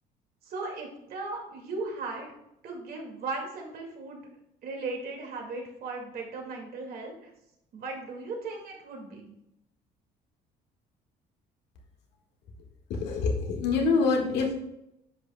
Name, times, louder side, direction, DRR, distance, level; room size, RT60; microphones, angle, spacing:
voice 1, 0.4-2.3 2.6-4.2 4.6-7.3 7.7-9.3, right 3 dB, 65° right, 1 dB, 2.1 m, -37 dB
voice 2, 12.9-14.5, left 4 dB, 80° left, 1 dB, 1.7 m, -25 dB
9.7 x 5.8 x 2.2 m, 0.83 s
cardioid pair, 110°, 17 cm